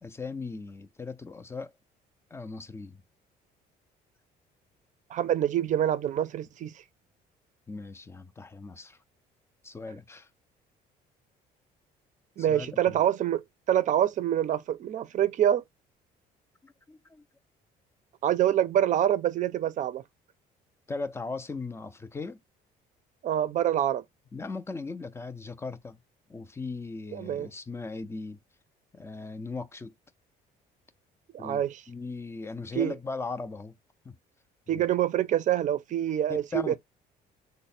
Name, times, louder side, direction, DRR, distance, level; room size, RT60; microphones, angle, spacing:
voice 1, 0.0-1.7 2.3-3.0 7.7-9.0 9.6-10.3 12.4-13.0 16.6-17.2 20.9-22.4 24.3-26.0 26.3-28.4 28.9-29.9 31.4-31.6 31.9-33.8 34.0-34.1 34.7-34.8 36.5-36.8, left 3 dB, 15° left, 0.4 m, -38 dB
voice 2, 5.1-6.7 12.4-15.6 18.2-20.0 23.2-24.0 27.1-27.5 31.3-31.8 32.7-32.9 34.7-36.8, right 11 dB, 50° right, 0.4 m, -26 dB
3.2 x 2.0 x 4.1 m
cardioid pair, 110°, 17 cm